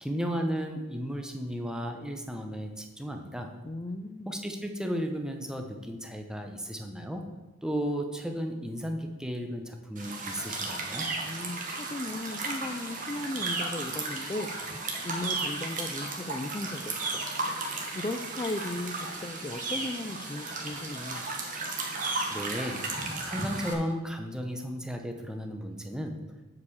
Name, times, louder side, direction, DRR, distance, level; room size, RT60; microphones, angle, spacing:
voice 1, 0.0-3.5 4.3-7.2 7.6-11.1 22.3-22.8 23.2-26.2, equal, 5° right, 4 dB, 0.9 m, -34 dB
voice 2, 3.6-4.3 11.2-14.5 15.0-17.3 17.7-21.2, left 2 dB, 20° left, 5 dB, 0.4 m, -36 dB
sound 1, 10.0-23.7, right 3 dB, 40° right, 1.5 m, -34 dB
8.2 x 4.9 x 7.2 m, 1.2 s
head